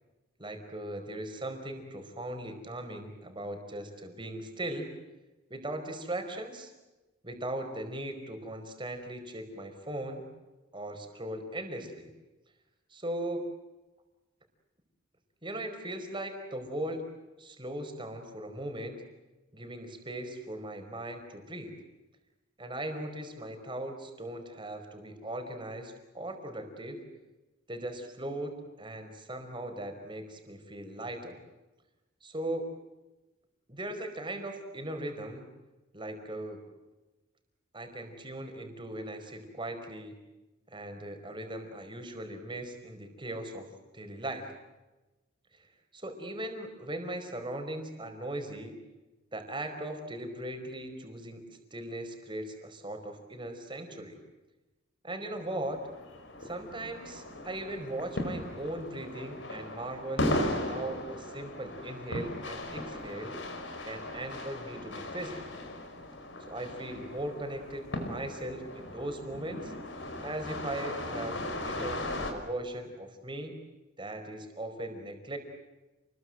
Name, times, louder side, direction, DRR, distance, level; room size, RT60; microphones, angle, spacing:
voice 1, 0.4-4.9 5.5-6.7 7.2-10.2 10.7-12.1 12.9-13.5 15.4-17.0 17.4-19.0 19.5-21.8 22.6-27.0 27.7-31.4 32.2-32.7 33.7-35.5 35.9-36.6 37.7-40.1 40.7-44.5 45.6-45.7 45.9-48.7 49.3-54.2 55.0-55.8 56.4-63.4 63.8-65.4 66.5-69.7 70.2-73.5 74.0-75.4, right 1 dB, 25° right, 5 dB, 4.9 m, -39 dB
sound 1, 55.4-72.3, left 1 dB, 70° left, 4.9 m, -37 dB
30.0 x 22.0 x 7.9 m, 1.1 s
head